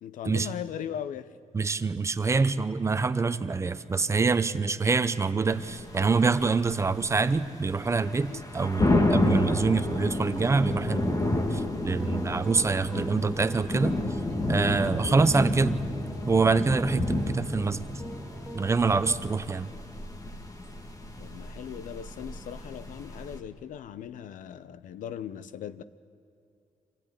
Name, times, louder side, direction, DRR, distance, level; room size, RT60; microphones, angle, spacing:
voice 1, 0.0-1.3 8.3-8.4 15.0-15.2 21.2-25.8, left 9 dB, 85° left, 15 dB, 0.8 m, -39 dB
voice 2, 1.5-11.2 11.5-14.0 14.5-15.8 16.3-17.8 18.5-19.7, right 4 dB, 20° right, 13 dB, 0.7 m, -25 dB
sound 1, 5.5-23.4, left 2 dB, 25° left, 1.7 m, -31 dB
sound 2, 11.8-19.1, equal, ahead, 2.7 m, -43 dB
25.0 x 16.0 x 10.0 m, 2.6 s
wide cardioid pair, 150°, 13 cm